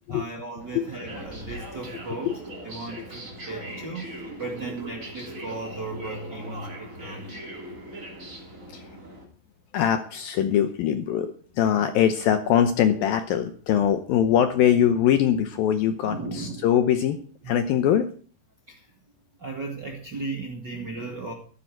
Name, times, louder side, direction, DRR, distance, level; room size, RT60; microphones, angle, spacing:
voice 1, 0.1-2.3 2.5-4.1 4.4-7.2 16.1-16.7 17.4-17.5 18.7-18.8 19.4-21.3, right 3 dB, 45° right, 1 dB, 1.4 m, -36 dB
sound 1, 0.6-9.2, right 1 dB, 20° right, 2.6 m, -40 dB
voice 2, 9.7-11.3 11.6-17.2 17.5-18.1, left 9 dB, 75° left, 9 dB, 2.2 m, -22 dB
14.0 x 13.0 x 4.6 m, 0.41 s
omnidirectional pair, 5.0 m